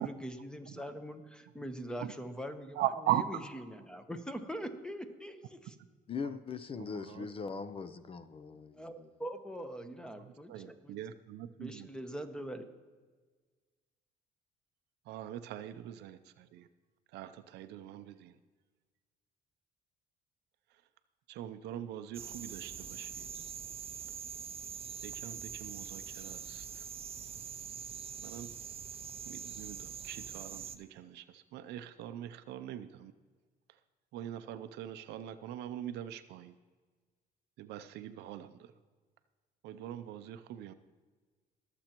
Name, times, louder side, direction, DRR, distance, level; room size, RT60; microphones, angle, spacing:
voice 1, 0.0-5.7 8.8-11.0 11.6-12.7, equal, 5° left, 0.9 m, -43 dB
voice 2, 2.8-3.2 6.2-6.4 6.8-7.6 10.2-11.9 15.1-16.7 17.1-18.4 21.3-23.4 25.0-26.9 28.2-28.5 29.3-33.1 34.1-36.6 37.6-38.7 39.6-40.7, right 12 dB, 80° right, 0.6 m, -41 dB
voice 3, 6.1-9.1, left 5 dB, 35° left, 0.6 m, -41 dB
sound 1, 22.1-30.8, right 7 dB, 35° right, 0.5 m, -44 dB
22.0 x 7.7 x 3.0 m
cardioid pair, 110°, 17 cm